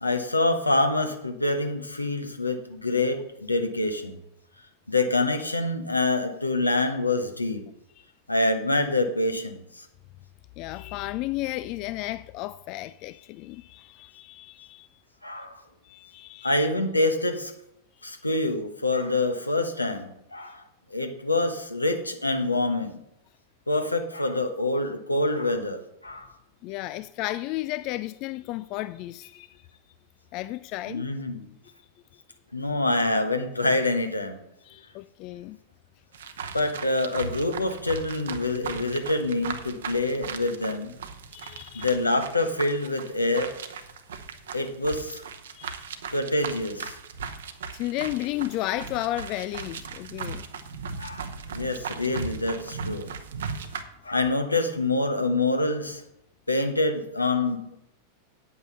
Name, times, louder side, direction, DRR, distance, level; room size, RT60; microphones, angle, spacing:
voice 1, 0.0-4.2 4.9-7.6 8.3-9.9 15.2-15.6 16.4-17.5 18.0-20.6 20.9-23.0 23.7-26.3 30.9-31.4 32.5-34.4 36.5-40.9 41.7-43.6 44.5-45.2 46.1-47.0 51.0-53.1 54.0-56.0 56.5-57.6, left 2 dB, 85° left, 1.1 m, -26 dB
voice 2, 10.6-14.9 15.8-16.7 26.6-29.7 30.3-31.0 34.6-35.6 41.3-41.9 45.5-45.9 47.7-50.5, left 16 dB, 40° left, 0.3 m, -33 dB
sound 1, 36.1-53.8, right 5 dB, 65° right, 0.9 m, -37 dB
8.9 x 8.6 x 5.5 m
figure-of-eight pair, 90°, 0 cm